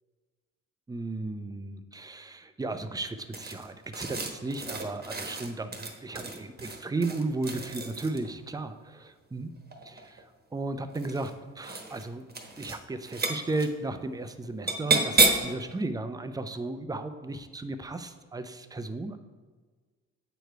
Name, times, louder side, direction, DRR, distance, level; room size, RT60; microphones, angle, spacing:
voice 1, 0.9-9.5 9.8-10.2 10.5-12.2 12.6-19.2, right 2 dB, 10° right, 9 dB, 0.5 m, -35 dB
sound 1, 3.3-8.3 9.6-10.2 10.9-11.3 11.6-12.0 12.3-12.8 13.0-13.7 14.7-15.6, right 3 dB, 30° right, 1.2 m, -30 dB
7.8 x 5.0 x 4.5 m, 1.4 s
cardioid pair, 90°, 30 cm